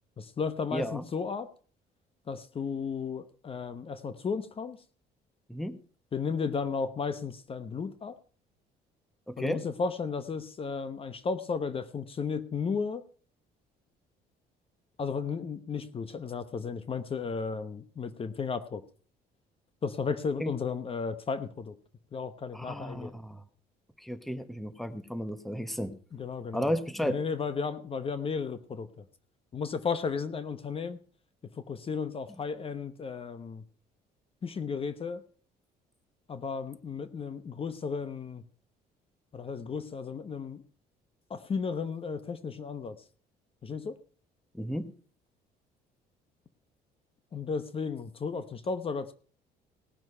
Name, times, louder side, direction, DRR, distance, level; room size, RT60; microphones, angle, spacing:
voice 1, 0.2-1.5 2.3-4.8 6.1-8.2 9.4-13.0 15.0-18.8 19.8-21.7 22.1-23.1 26.1-26.7 27.0-29.0 29.5-31.0 31.6-33.6 34.4-35.2 36.3-38.4 39.3-40.6 41.3-43.0 43.6-43.9 47.3-49.1, left 5 dB, 35° left, 12 dB, 0.9 m, -34 dB
voice 2, 0.7-1.0 5.5-5.7 9.3-9.6 20.4-20.5 22.5-23.4 24.0-25.9 26.5-27.2 44.5-44.9, equal, ahead, 12 dB, 1.0 m, -33 dB
18.0 x 6.2 x 5.5 m, 0.43 s
cardioid pair, 110°, 17 cm